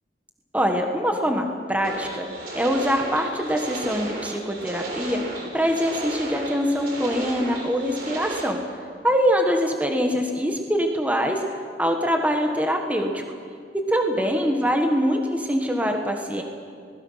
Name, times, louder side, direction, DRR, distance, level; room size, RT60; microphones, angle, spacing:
voice 1, 0.5-2.3 2.5-5.2 5.5-8.6 9.0-11.4 11.8-13.2 13.7-16.4, equal, 10° right, 3 dB, 1.4 m, -23 dB
sound 1, 1.8-8.4, right 1 dB, 55° right, 4.1 m, -34 dB
25.0 x 20.0 x 5.7 m, 2.2 s
head